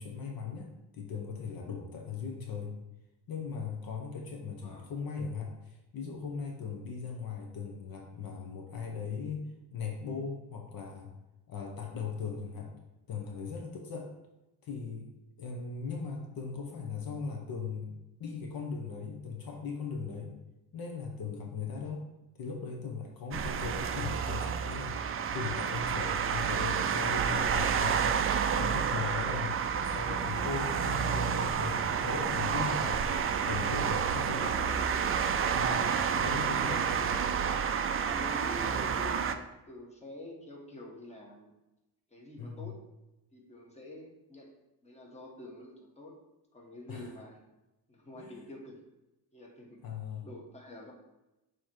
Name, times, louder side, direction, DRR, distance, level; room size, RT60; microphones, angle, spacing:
voice 1, 0.0-2.8 3.3-9.4 9.7-11.1 11.5-12.7 13.1-14.1 14.6-15.1 15.4-17.9 18.2-20.3 20.7-22.1 22.4-25.0 25.3-33.0 33.4-34.7 35.5-35.9 36.1-36.8 42.4-42.7 46.9-47.1 48.2-48.4 49.8-50.3, left 5 dB, 55° left, 1 dB, 1.0 m, -38 dB
sound 1, 23.3-39.3, right 7 dB, 35° right, 0.4 m, -30 dB
voice 2, 32.7-33.0 34.7-34.9 36.6-36.8 38.1-41.5 42.1-42.8 43.3-44.5 44.8-46.2 46.5-47.4 47.9-48.8 49.3-49.8 50.2-50.9, left 1 dB, 15° left, -1 dB, 1.3 m, -47 dB
7.0 x 3.1 x 4.6 m, 0.98 s
cardioid pair, 115°, 41 cm